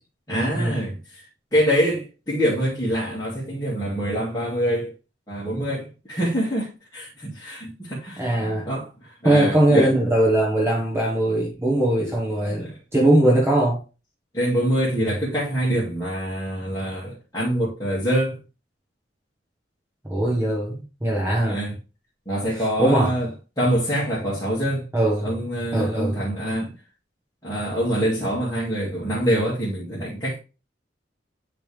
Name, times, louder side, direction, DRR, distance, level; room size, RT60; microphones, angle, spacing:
voice 1, 0.3-1.2 1.5-4.9 5.3-8.3 8.7-9.9 12.6-12.7 14.3-18.4 21.5-21.7 22.3-23.3 23.6-24.9 25.2-26.7 27.4-30.4, equal, 20° left, 2.3 m, -25 dB
voice 2, 8.2-8.7 9.2-13.8 20.0-21.6 22.5-23.1 24.9-25.3 25.7-26.2, right 1 dB, 15° right, 1.3 m, -21 dB
9.7 x 3.4 x 3.3 m
head